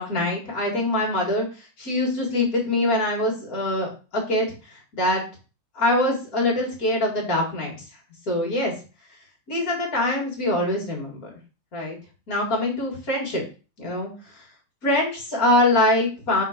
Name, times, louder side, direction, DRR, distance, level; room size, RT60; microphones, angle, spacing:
voice 1, 0.0-1.5 1.8-4.5 4.9-5.2 5.8-7.8 8.3-8.7 9.5-11.3 11.7-12.0 12.3-13.4 13.8-14.1 14.8-16.4, left 1 dB, 45° left, -2 dB, 2.6 m, -23 dB
4.7 x 4.0 x 5.1 m, 0.34 s
omnidirectional pair, 2.2 m